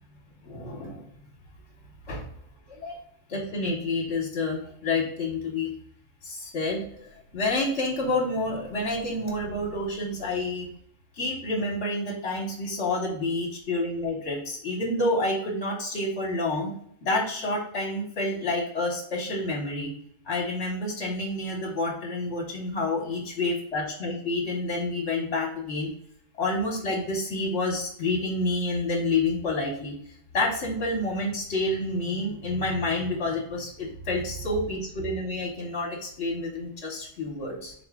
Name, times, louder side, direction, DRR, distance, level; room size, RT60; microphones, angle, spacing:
voice 1, 0.4-1.1 2.1-2.2 2.7-3.0 3.3-5.7 6.2-10.7 11.1-16.7 17.0-19.9 20.2-25.9 26.4-37.7, left 2 dB, 65° left, -2 dB, 1.1 m, -29 dB
4.0 x 2.6 x 3.4 m, 0.67 s
omnidirectional pair, 1.2 m